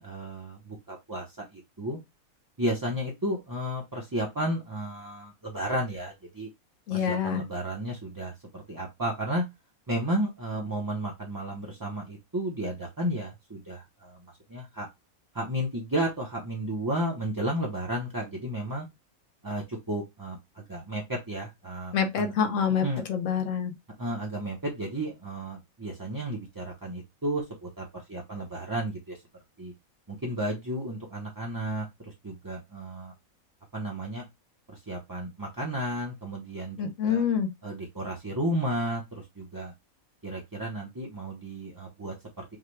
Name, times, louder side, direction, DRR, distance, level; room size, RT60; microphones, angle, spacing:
voice 1, 0.0-2.0 2.6-6.5 6.9-9.4 9.9-14.2 14.5-14.9 15.3-18.9 19.4-22.3 22.8-23.0 24.0-29.2 29.6-29.7 30.1-31.9 32.2-33.1 33.7-34.3 34.7-37.2 37.6-39.7 40.2-42.6, right 1 dB, 20° right, 0.6 m, -33 dB
voice 2, 6.9-7.4 21.9-23.7 36.8-37.5, left 7 dB, 65° left, 1.2 m, -26 dB
5.7 x 2.2 x 3.3 m
omnidirectional pair, 1.5 m